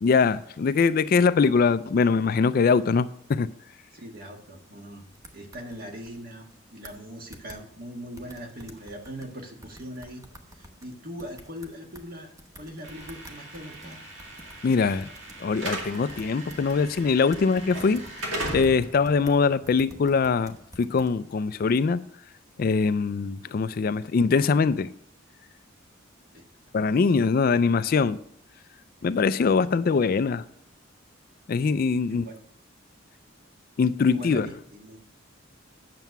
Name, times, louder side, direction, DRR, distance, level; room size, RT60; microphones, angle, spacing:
voice 1, 0.0-3.5 14.6-15.1 15.4-22.0 22.6-24.9 26.7-28.2 29.0-30.4 31.5-32.2 33.8-34.5, left 5 dB, 45° left, 0.3 m, -23 dB
voice 2, 3.9-5.0 5.3-10.2 10.5-14.0 26.3-26.5 29.0-29.1 32.1-32.4 34.0-35.0, equal, 50° right, 1.6 m, -41 dB
sound 1, 5.1-6.2 6.5-6.6 6.8-7.1 7.3-7.6 8.2-9.3 9.6-12.1 12.4-19.4 19.7-21.1, right 1 dB, 15° right, 0.9 m, -48 dB
Slam / Alarm, 12.8-20.9, right 1 dB, 75° right, 2.3 m, -38 dB
9.2 x 6.8 x 5.8 m
head